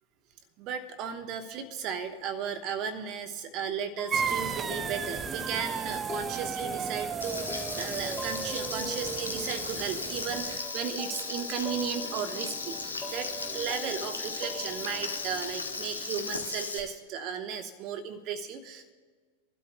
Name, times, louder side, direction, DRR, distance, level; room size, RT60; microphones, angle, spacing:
voice 1, 0.6-18.9, right 7 dB, 40° right, 8 dB, 1.1 m, -35 dB
sound 1, 4.0-16.6, left 1 dB, 15° left, 1.0 m, -44 dB
sound 2, 4.1-10.6, right 6 dB, 20° right, 0.4 m, -34 dB
Frying (food), 7.2-16.8, left 4 dB, 75° left, 1.2 m, -36 dB
24.5 x 12.5 x 2.2 m, 1.5 s
figure-of-eight pair, 90°, 0 cm